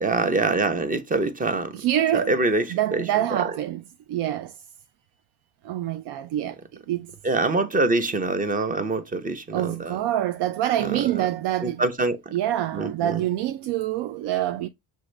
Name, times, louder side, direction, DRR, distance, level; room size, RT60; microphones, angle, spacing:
voice 1, 0.0-1.8 2.1-3.5 7.2-10.0 10.8-11.3 11.6-12.2 12.7-13.2, right 3 dB, 20° right, 0.7 m, -25 dB
voice 2, 1.7-2.3 2.7-3.8 4.1-4.6 5.6-7.1 9.5-11.8 12.3-14.7, right 12 dB, 75° right, 0.5 m, -26 dB
6.3 x 2.7 x 3.1 m
cardioid pair, 115°, 40 cm